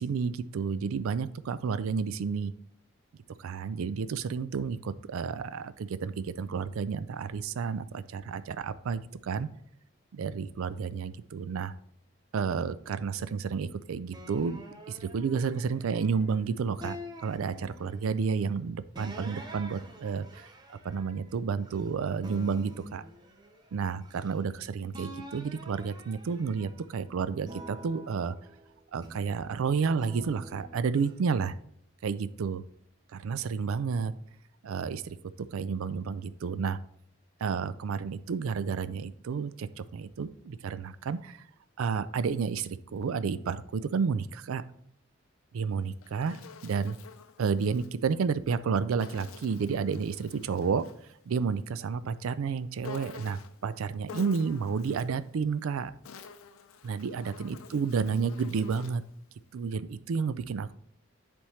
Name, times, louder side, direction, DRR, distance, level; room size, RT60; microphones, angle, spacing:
voice 1, 0.0-2.5 3.4-9.5 10.1-11.7 12.3-14.6 14.9-17.0 17.2-23.0 23.7-28.4 28.9-31.5 32.0-32.6 33.1-34.1 34.6-35.2 35.5-36.8 37.4-41.4 41.8-44.6 45.5-46.4 46.6-47.0 47.4-50.8 51.3-55.9 56.8-59.0 59.5-60.7, right 5 dB, 85° right, 14 dB, 0.4 m, -31 dB
sound 1, 14.1-16.3 16.8-18.2 18.9-21.9 22.2-24.6 24.9-26.9 27.4-29.4 30.0-31.1, equal, 20° right, 0.6 m, -47 dB
Insect, 45.7-47.9 49.0-51.1 52.8-53.6 54.1-55.2 55.8-59.1, left 6 dB, 85° left, 0.5 m, -49 dB
9.9 x 3.5 x 3.1 m, 0.67 s
head